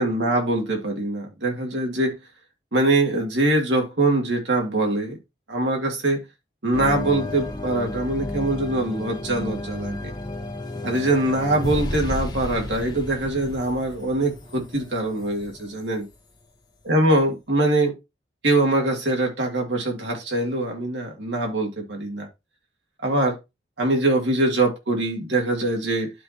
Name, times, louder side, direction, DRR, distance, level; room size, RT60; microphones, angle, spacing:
voice 1, 0.0-2.2 2.7-5.2 5.5-6.2 6.6-10.1 10.8-16.1 16.9-17.9 18.4-22.3 23.0-23.4 23.8-26.1, right 2 dB, 80° right, 2.4 m, -23 dB
sound 1, 6.7-16.1, left 1 dB, 25° left, 0.9 m, -32 dB
11.5 x 4.2 x 2.9 m
head